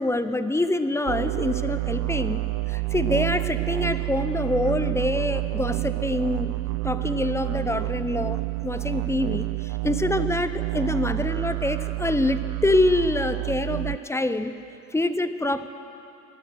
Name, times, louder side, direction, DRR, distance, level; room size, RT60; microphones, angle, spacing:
voice 1, 0.0-2.4 2.7-6.5 6.8-14.5 14.9-15.7, left 2 dB, 5° left, 11 dB, 0.6 m, -25 dB
sound 1, 1.1-14.0, right 24 dB, 50° right, 0.4 m, -28 dB
20.5 x 8.3 x 6.2 m, 2.7 s
hypercardioid pair, 75°, 43 cm